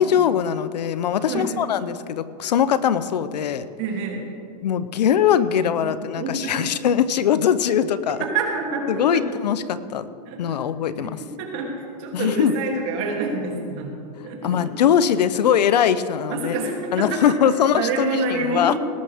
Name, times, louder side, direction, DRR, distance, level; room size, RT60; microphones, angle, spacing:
voice 1, 0.0-3.7 4.6-8.2 8.9-10.1 10.4-11.2 12.1-12.5 14.4-16.5 16.9-18.8, left 9 dB, 90° left, 14 dB, 0.7 m, -21 dB
voice 2, 3.8-4.3 5.8-5.9 6.2-6.7 8.1-9.3 10.2-10.6 10.8-13.9 14.2-14.8 16.3-17.4 17.7-18.8, right 3 dB, 50° right, 0 dB, 2.9 m, -27 dB
19.0 x 11.5 x 3.6 m, 2.4 s
supercardioid pair, 140°, 21 cm